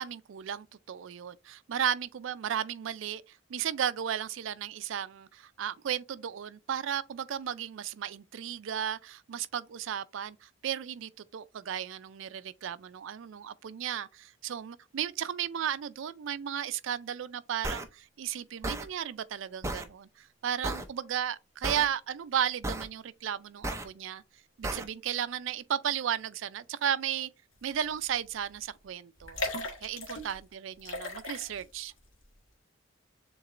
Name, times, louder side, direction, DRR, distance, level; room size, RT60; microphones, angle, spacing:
voice 1, 0.0-24.2 24.6-27.3 27.6-29.4 29.8-31.9, right 9 dB, 70° right, 0.4 m, -34 dB
sound 1, 17.6-17.8 18.6-18.9 19.6-19.9 20.6-20.9 21.6-21.8 22.6-22.9 23.6-23.8 24.6-24.8, right 2 dB, 15° right, 0.5 m, -33 dB
sound 2, 27.9-28.1 28.4-28.5 29.2-30.4 30.8-31.8 32.2-32.3, left 2 dB, 80° left, 1.5 m, -37 dB
7.1 x 3.0 x 2.5 m
head